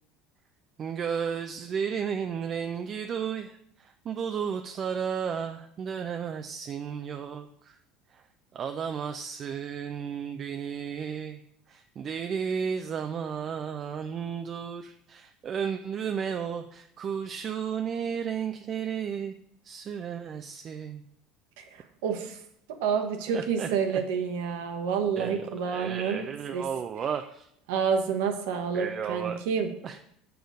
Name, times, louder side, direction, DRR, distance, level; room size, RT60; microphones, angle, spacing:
voice 1, 0.8-7.8 8.1-8.3 8.5-11.4 11.7-19.4 19.6-21.0 23.3-24.0 25.2-27.5 28.7-29.4 29.8-30.0, right 7 dB, 40° right, 6 dB, 0.5 m, -33 dB
voice 2, 21.6-22.4 22.8-26.2 26.5-26.6 27.7-29.7, right 6 dB, 65° right, 4 dB, 1.1 m, -29 dB
7.0 x 3.8 x 6.3 m, 0.72 s
hypercardioid pair, 70°, 0 cm